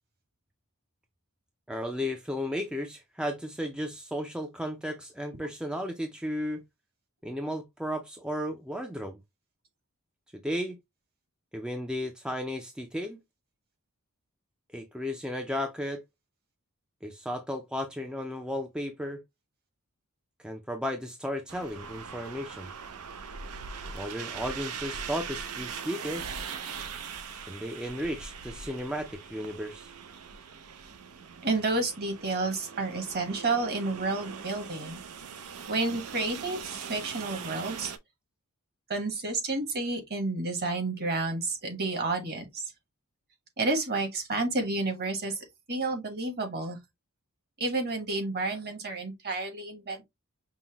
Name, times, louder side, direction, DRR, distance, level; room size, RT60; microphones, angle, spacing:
voice 1, 1.7-6.6 7.2-9.2 10.3-10.8 11.5-13.2 14.7-16.0 17.0-19.2 20.4-22.7 23.9-26.4 27.5-29.9, equal, 5° right, 0.4 m, -34 dB
sound 1, 21.5-38.0, right 6 dB, 80° right, 0.6 m, -41 dB
voice 2, 31.4-35.0 35.7-37.9 38.9-42.6 43.6-46.8 47.6-50.0, right 3 dB, 45° right, 1.3 m, -30 dB
5.5 x 2.1 x 2.9 m
head